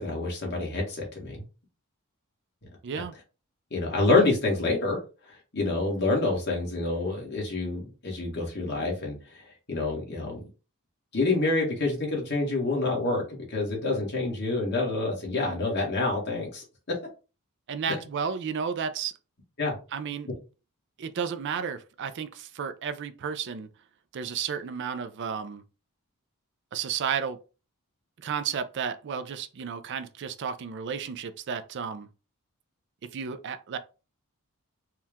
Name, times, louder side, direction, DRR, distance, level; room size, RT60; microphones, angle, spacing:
voice 1, 0.0-1.4 2.9-3.0 3.7-5.0 5.3-9.4 9.7-10.4 11.1-17.0 19.6-19.7, left 3 dB, 50° left, 1.6 m, -27 dB
voice 2, 2.8-3.1 17.7-19.1 19.9-20.3 21.0-23.7 24.1-25.6 26.7-27.4 28.2-32.1 33.1-33.8, right 7 dB, 55° right, 0.4 m, -32 dB
4.4 x 2.3 x 3.5 m
head